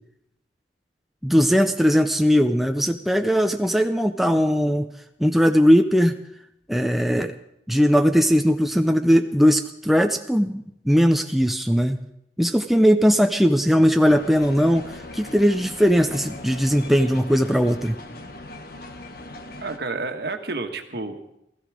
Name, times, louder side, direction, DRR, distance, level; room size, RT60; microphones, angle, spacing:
voice 1, 1.2-4.9 5.2-6.2 6.7-7.3 7.7-12.0 12.4-18.0, equal, ahead, 6 dB, 0.5 m, -19 dB
sound 1, 14.0-19.8, left 2 dB, 55° left, 1.3 m, -39 dB
voice 2, 19.6-21.4, right 3 dB, 60° right, 6 dB, 1.4 m, -30 dB
16.5 x 14.5 x 4.9 m, 0.80 s
head